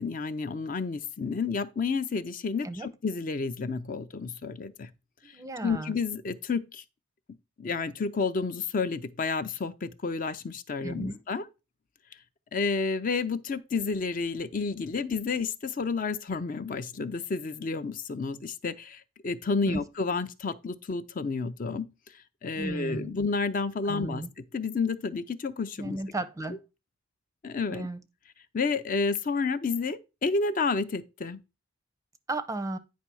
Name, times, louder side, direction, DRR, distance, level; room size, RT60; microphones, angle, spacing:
voice 1, 0.0-4.9 5.3-5.4 5.6-6.8 7.6-11.5 12.5-21.9 22.1-26.0 26.5-26.6 27.4-27.9 28.5-31.4, left 4 dB, 40° left, 0.5 m, -30 dB
voice 2, 5.2-6.0 10.8-11.2 19.7-19.8 22.6-23.2 23.8-24.3 25.8-26.6 27.7-28.0 32.3-32.8, right 2 dB, 15° right, 0.5 m, -34 dB
9.4 x 3.2 x 6.1 m
head